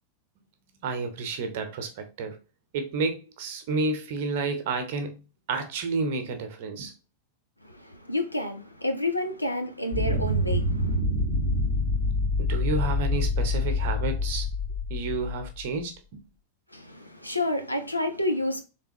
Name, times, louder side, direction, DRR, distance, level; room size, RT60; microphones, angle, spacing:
voice 1, 0.8-2.4 2.7-5.2 5.5-6.9 12.4-14.5 14.9-16.2, right 3 dB, 50° right, 0.8 m, -30 dB
voice 2, 7.6-11.0 16.7-18.6, left 1 dB, 85° left, 0.6 m, -30 dB
sound 1, 9.9-15.7, left 2 dB, 65° left, 1.8 m, -26 dB
3.7 x 3.3 x 2.9 m
figure-of-eight pair, 90°, 0 cm